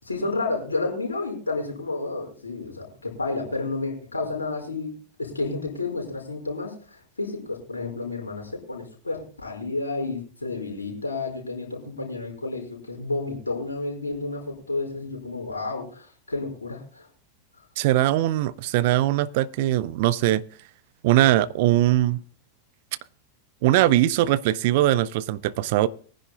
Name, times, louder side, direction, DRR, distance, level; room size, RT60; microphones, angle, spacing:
voice 1, 0.0-17.1, left 3 dB, 75° left, 4.9 m, -31 dB
voice 2, 17.8-20.4 21.0-22.2 23.6-25.9, right 14 dB, 50° right, 0.5 m, -21 dB
23.0 x 10.5 x 2.3 m
figure-of-eight pair, 90°, 0 cm